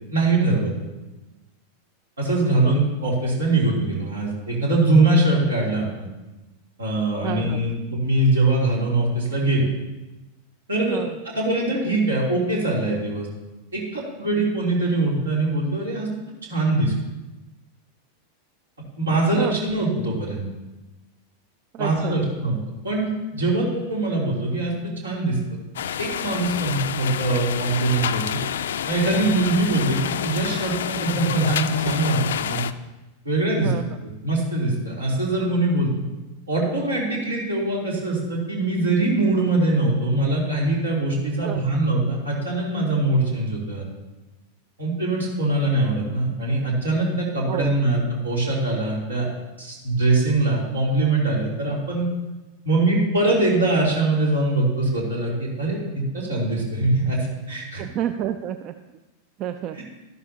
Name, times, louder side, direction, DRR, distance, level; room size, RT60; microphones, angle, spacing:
voice 1, 0.1-0.7 2.2-6.1 6.8-9.7 10.7-13.3 13.7-16.1 16.5-16.9 19.0-20.5 21.8-22.6 22.8-25.4 26.0-28.2 28.9-32.6 33.2-33.7 34.2-35.9 36.5-43.8 44.8-49.3 49.6-52.1 52.6-57.8 59.7-59.8, right 2 dB, 70° right, -3 dB, 3.2 m, -22 dB
voice 2, 7.2-7.6 10.9-11.2 19.4-19.5 21.7-22.2 33.6-34.0 41.4-41.6 47.5-47.9 57.8-58.7 59.4-59.8, right 10 dB, 35° right, 10 dB, 0.4 m, -29 dB
sound 1, 25.8-32.7, left 9 dB, 60° left, 0.4 m, -28 dB
12.5 x 11.5 x 2.8 m, 1.1 s
figure-of-eight pair, 90°, 0 cm